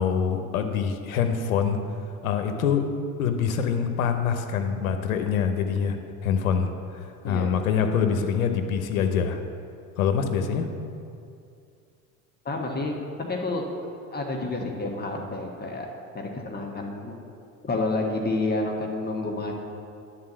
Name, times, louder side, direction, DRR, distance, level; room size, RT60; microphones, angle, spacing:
voice 1, 0.0-1.8 2.2-2.9 3.2-9.4 10.0-10.7, left 7 dB, 90° left, 7 dB, 0.8 m, -25 dB
voice 2, 7.2-7.5 12.4-12.9 13.3-13.6 14.1-15.9 16.1-17.1 17.6-19.5, left 2 dB, 25° left, 0 dB, 1.3 m, -29 dB
10.5 x 4.0 x 7.3 m, 2.4 s
hypercardioid pair, 80°, 40 cm